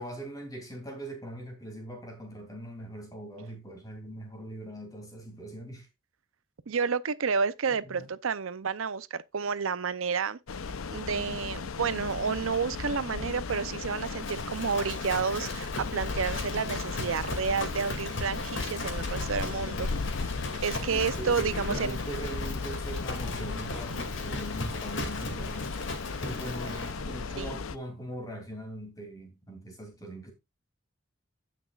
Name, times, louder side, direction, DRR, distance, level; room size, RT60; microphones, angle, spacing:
voice 1, 0.0-5.9 7.7-8.1 20.9-25.8 26.2-30.3, right 1 dB, 15° left, 2.9 m, -41 dB
voice 2, 6.7-10.4 10.9-19.9 20.6-22.0 27.4-27.6, right 5 dB, 80° right, 0.6 m, -30 dB
sound 1, 10.5-27.8, left 4 dB, 90° left, 0.7 m, -36 dB
Livestock farm animals working animals, 12.0-27.6, left 2 dB, 65° left, 2.4 m, -38 dB
16.0 x 6.0 x 2.4 m
head